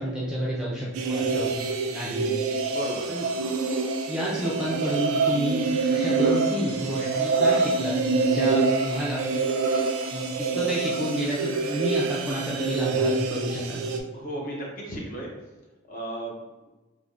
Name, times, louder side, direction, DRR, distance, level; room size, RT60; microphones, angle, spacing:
voice 1, 0.0-1.5 1.9-2.3 3.1-3.3 4.1-9.2 10.1-13.8, right 1 dB, 5° right, -6 dB, 0.3 m, -30 dB
sound 1, 0.9-14.0, right 4 dB, 90° right, 0.3 m, -26 dB
voice 2, 2.7-3.1 14.1-15.3 15.9-16.3, right 1 dB, 40° left, -2 dB, 0.6 m, -34 dB
3.2 x 2.1 x 2.5 m, 1.1 s
head